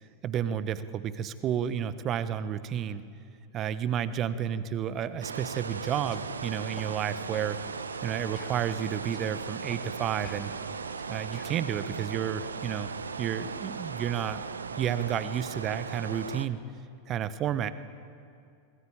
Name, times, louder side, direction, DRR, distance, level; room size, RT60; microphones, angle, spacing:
voice 1, 0.2-3.0 3.5-7.6 8.0-10.5 11.1-12.9 13.2-14.4 14.8-16.6 17.1-17.7, right 9 dB, 30° right, 14 dB, 1.2 m, -31 dB
sound 1, 5.2-16.5, right 5 dB, 75° right, 1.0 m, -37 dB
sound 2, 6.0-6.2 6.8-6.9 7.3-7.5 7.9-8.1 8.4-9.3 9.7-9.8 10.2-11.6, left 7 dB, 30° left, 3.0 m, -50 dB
26.0 x 21.0 x 8.8 m, 2.4 s
figure-of-eight pair, 90°, 0 cm